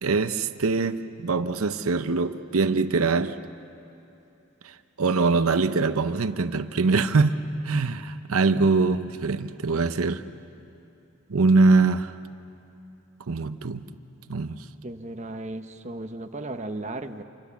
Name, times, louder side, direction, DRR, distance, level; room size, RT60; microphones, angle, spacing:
voice 1, 0.0-3.4 5.0-7.4 7.6-10.2 11.3-12.1 13.3-13.9 14.3-14.6, right 3 dB, 90° right, 10 dB, 0.8 m, -23 dB
voice 2, 14.8-17.2, right 2 dB, 30° right, 6 dB, 0.9 m, -35 dB
28.0 x 25.0 x 7.1 m, 2.9 s
head